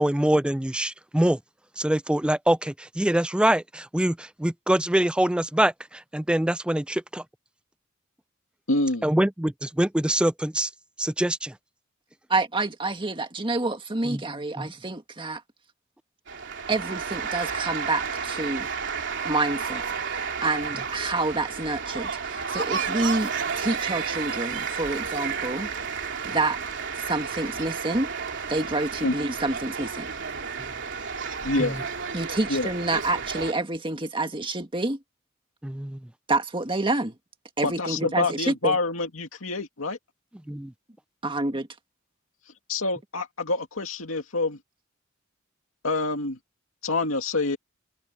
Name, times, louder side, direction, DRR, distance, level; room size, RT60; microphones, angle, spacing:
voice 1, 0.0-1.4 1.8-7.2 9.0-10.7 11.0-11.5 14.0-14.2 14.6-14.7 31.6-31.8 35.6-36.0 40.5-40.7, right 1 dB, 5° right, 0.4 m, -24 dB
voice 2, 8.7-9.1 29.0-29.1 31.4-31.8 32.5-32.7 37.6-40.0 42.7-44.6 45.8-46.4 46.8-47.6, left 2 dB, 80° left, 2.2 m, -26 dB
voice 3, 12.3-15.4 16.7-18.7 19.2-19.8 20.4-25.7 26.2-26.6 27.1-28.1 28.5-30.1 32.1-35.0 36.3-37.1 37.6-38.8 41.2-41.7, right 2 dB, 25° right, 1.9 m, -28 dB
sound 1, 16.3-33.5, right 6 dB, 60° right, 3.2 m, -32 dB
head